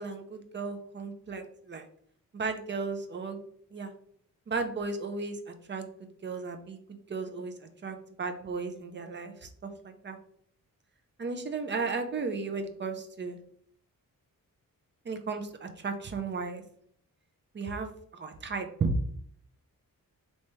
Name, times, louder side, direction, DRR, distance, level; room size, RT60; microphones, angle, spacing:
voice 1, 0.0-1.9 2.3-3.4 3.7-3.9 4.5-5.9 6.2-10.2 11.2-13.4 15.1-16.6 17.5-18.9, right 4 dB, 35° right, 6 dB, 0.4 m, -35 dB
3.3 x 2.8 x 3.0 m, 0.63 s
wide cardioid pair, 160°, 34 cm